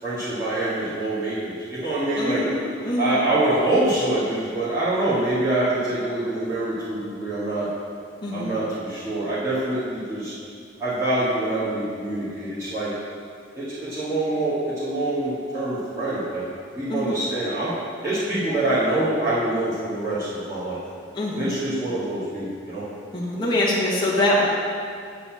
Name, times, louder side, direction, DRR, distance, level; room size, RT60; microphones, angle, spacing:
voice 1, 0.0-2.4 3.0-7.7 8.3-10.3 10.8-12.9 13.5-16.4 16.7-20.8 21.3-22.8, right 1 dB, 15° right, -14 dB, 2.0 m, -25 dB
voice 2, 2.2-3.3 8.2-8.6 16.9-17.3 21.1-21.5 23.1-24.5, left 1 dB, 20° left, -5 dB, 1.2 m, -24 dB
9.7 x 4.1 x 7.5 m, 2.2 s
head